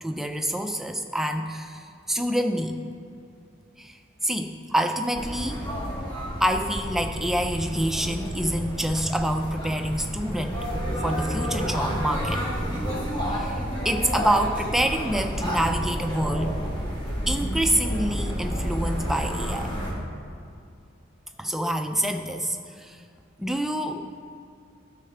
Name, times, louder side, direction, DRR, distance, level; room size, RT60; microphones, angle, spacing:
voice 1, 0.0-2.8 3.8-4.0 4.2-5.7 6.4-10.7 11.0-12.5 13.3-16.6 17.3-19.7 21.4-23.0 23.4-24.1, right 1 dB, ahead, 5 dB, 0.4 m, -27 dB
sound 1, 5.1-19.9, equal, 25° left, 1.6 m, -30 dB
12.0 x 6.6 x 3.4 m, 2.5 s
head